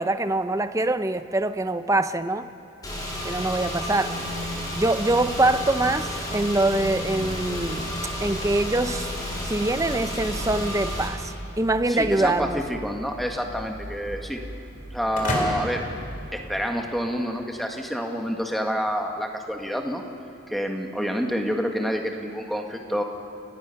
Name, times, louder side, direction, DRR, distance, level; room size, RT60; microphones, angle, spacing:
voice 1, 0.0-2.5 3.2-4.2 4.8-7.9 8.2-9.1 9.4-12.6, right 2 dB, 15° right, 11 dB, 0.6 m, -24 dB
Car / Engine, 2.8-11.1, equal, 20° left, 3.5 m, -31 dB
sound 1, 4.8-16.7, right 1 dB, 65° right, 2.4 m, -40 dB
voice 2, 11.9-14.4 14.9-15.9 16.3-20.0 20.5-23.0, equal, ahead, 2 dB, 1.5 m, -28 dB
sound 2, 15.1-17.1, left 1 dB, 40° left, 3.5 m, -31 dB
29.5 x 15.5 x 5.8 m, 2.7 s
head